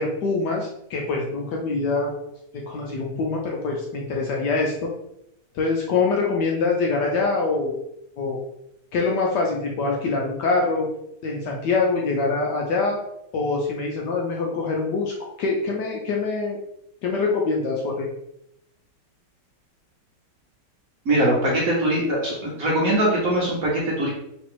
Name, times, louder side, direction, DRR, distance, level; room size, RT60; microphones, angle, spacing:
voice 1, 0.0-2.1 2.5-4.9 5.5-7.8 8.2-8.4 8.9-10.9 11.2-13.0 13.3-16.6 17.0-18.1, left 3 dB, 70° left, -1 dB, 1.1 m, -24 dB
voice 2, 21.1-24.1, right 1 dB, 55° right, -3 dB, 1.1 m, -22 dB
3.3 x 3.0 x 4.5 m, 0.79 s
omnidirectional pair, 2.4 m